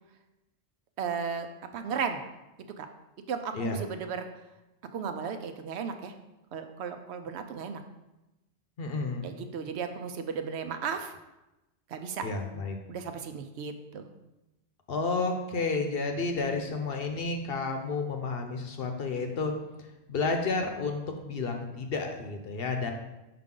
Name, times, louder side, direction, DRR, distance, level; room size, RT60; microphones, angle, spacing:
voice 1, 1.0-1.5 1.7-2.2 2.8-2.9 3.3-4.2 4.9-6.1 6.5-7.8 9.2-11.1 11.9-12.2 12.9-14.1, right 6 dB, 75° right, 8 dB, 0.8 m, -35 dB
voice 2, 8.8-9.3 12.2-12.8 14.9-19.5 20.1-22.9, left 3 dB, 60° left, 4 dB, 0.9 m, -31 dB
5.8 x 5.1 x 3.7 m, 0.98 s
omnidirectional pair, 1.2 m